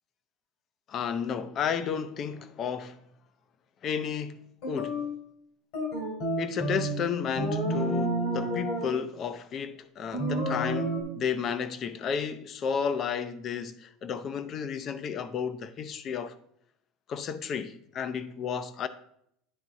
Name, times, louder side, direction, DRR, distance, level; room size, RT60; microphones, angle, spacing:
voice 1, 0.9-3.0 3.8-4.4 4.7-5.0 6.4-16.3 17.1-18.9, left 7 dB, 35° left, 0.5 m, -32 dB
sound 1, 4.6-5.1 5.7-7.0 7.3-8.9 10.1-11.0, right 1 dB, 60° left, 2.4 m, -30 dB
9.9 x 3.6 x 4.0 m
supercardioid pair, 145°, 0 cm